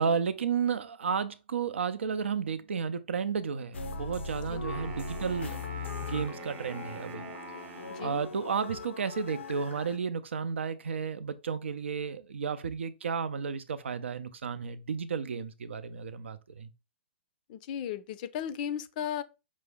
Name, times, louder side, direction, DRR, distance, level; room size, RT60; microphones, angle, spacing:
voice 1, 0.0-5.6 6.0-7.3 8.0-16.7, right 6 dB, 85° right, 0.5 m, -32 dB
sound 1, 3.7-10.0, left 4 dB, 90° left, 0.6 m, -40 dB
Wind instrument woodwind instrument, 4.5-8.5, right 6 dB, 20° right, 0.5 m, -46 dB
voice 2, 17.5-19.2, left 9 dB, 45° left, 0.4 m, -35 dB
5.4 x 2.0 x 3.3 m
hypercardioid pair, 140°, 6 cm